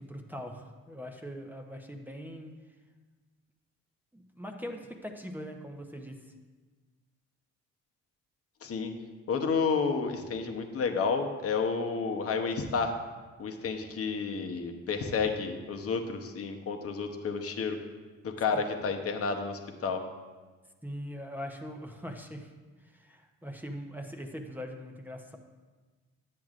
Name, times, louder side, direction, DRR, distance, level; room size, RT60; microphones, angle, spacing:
voice 1, 0.0-2.5 4.1-6.3 20.8-22.5 22.8-25.4, equal, 5° right, 3 dB, 0.7 m, -41 dB
voice 2, 8.6-8.9 9.3-13.0 13.4-17.8 18.2-20.0, left 5 dB, 50° left, 4 dB, 0.9 m, -31 dB
10.5 x 7.6 x 2.5 m, 1.3 s
cardioid pair, 90°, 30 cm